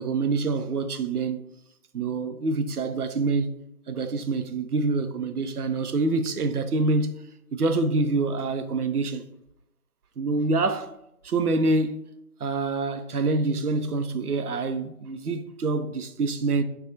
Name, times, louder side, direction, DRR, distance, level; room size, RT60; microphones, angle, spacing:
voice 1, 0.0-1.4 1.9-3.5 3.9-7.1 7.5-9.2 10.2-10.9 11.2-12.0 12.4-16.6, right 3 dB, 80° right, 0.6 m, -26 dB
6.1 x 2.3 x 2.6 m
figure-of-eight pair, 155°, 44 cm